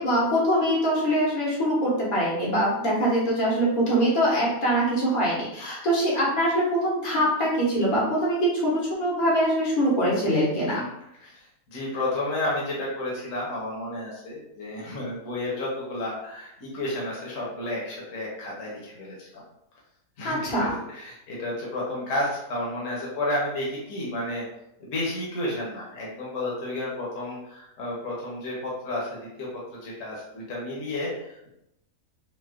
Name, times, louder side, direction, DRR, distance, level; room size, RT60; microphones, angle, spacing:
voice 1, 0.0-8.7 9.0-10.8 20.2-20.7, equal, 90° left, -6 dB, 1.7 m, -23 dB
voice 2, 11.2-19.2 20.2-24.5 24.8-29.5 29.8-31.5, left 1 dB, 65° left, -4 dB, 1.2 m, -31 dB
4.3 x 2.1 x 2.3 m, 0.84 s
omnidirectional pair, 1.5 m